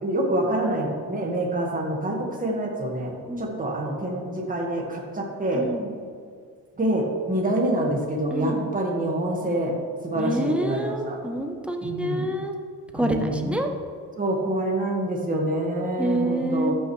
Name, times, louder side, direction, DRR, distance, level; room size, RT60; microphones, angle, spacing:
voice 1, 0.0-5.7 6.8-9.7 10.0-11.2 11.8-12.2 12.9-13.6 14.2-16.7, right 1 dB, 25° right, 0 dB, 1.6 m, -26 dB
voice 2, 3.3-3.6 5.5-5.9 8.3-8.7 10.1-12.6 12.9-13.7 16.0-16.7, right 1 dB, 5° right, 4 dB, 0.8 m, -27 dB
13.5 x 6.3 x 3.2 m, 2.1 s
cardioid pair, 120°, 35 cm